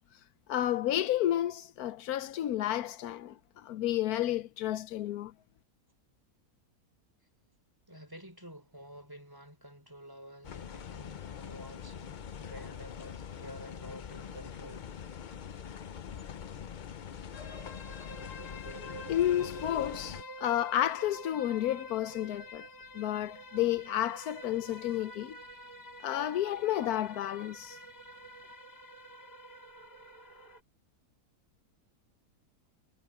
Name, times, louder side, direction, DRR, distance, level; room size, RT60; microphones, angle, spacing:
voice 1, 0.5-5.3 19.1-22.7 22.9-25.4 26.0-27.8, left 12 dB, 80° left, 1.2 m, -31 dB
voice 2, 7.9-14.9, equal, 15° right, 3.6 m, -50 dB
sound 1, 10.4-20.2, left 8 dB, 60° left, 0.5 m, -44 dB
sound 2, 17.3-30.6, equal, 40° left, 1.9 m, -48 dB
omnidirectional pair, 1.6 m